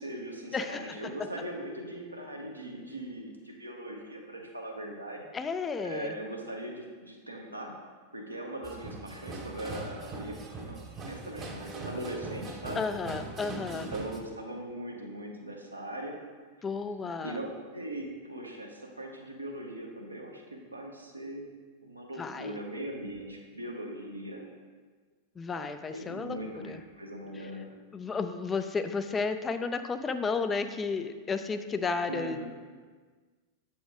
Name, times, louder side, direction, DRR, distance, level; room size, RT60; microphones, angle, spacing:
voice 1, 0.0-5.3 5.8-7.7 8.1-10.8 11.0-12.8 13.7-16.2 17.2-21.5 21.8-24.4 25.9-27.8 32.1-32.5, right 1 dB, 85° right, 0 dB, 0.9 m, -40 dB
voice 2, 0.5-1.0 5.3-6.1 12.7-13.9 16.6-17.4 22.2-22.6 25.4-26.4 26.6-26.8 27.9-32.5, left 4 dB, 20° left, 9 dB, 0.4 m, -32 dB
sound 1, 8.6-14.2, right 3 dB, 25° right, 0.8 m, -41 dB
7.6 x 4.3 x 3.5 m, 1.5 s
figure-of-eight pair, 90°, 0 cm